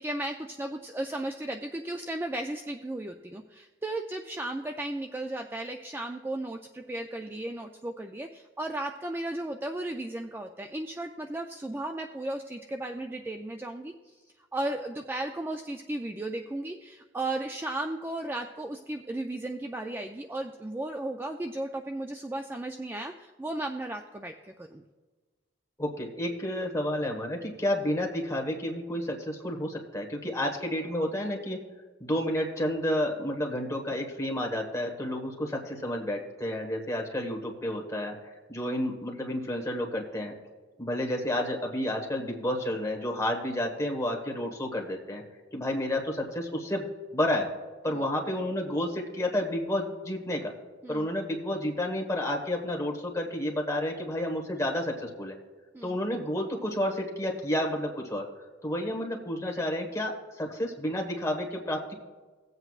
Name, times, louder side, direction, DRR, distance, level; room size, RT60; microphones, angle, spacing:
voice 1, 0.0-14.2 14.5-24.3 24.6-24.8 47.9-48.0 50.8-51.1 55.7-56.0, right 1 dB, 10° right, 4 dB, 0.4 m, -35 dB
voice 2, 25.8-31.6 32.0-38.1 38.5-40.3 40.8-45.2 45.5-46.9 47.1-47.5 47.8-50.5 50.9-55.4 55.8-58.3 58.6-61.9, left 1 dB, 15° left, 1 dB, 1.4 m, -30 dB
17.0 x 7.9 x 2.4 m, 1.3 s
head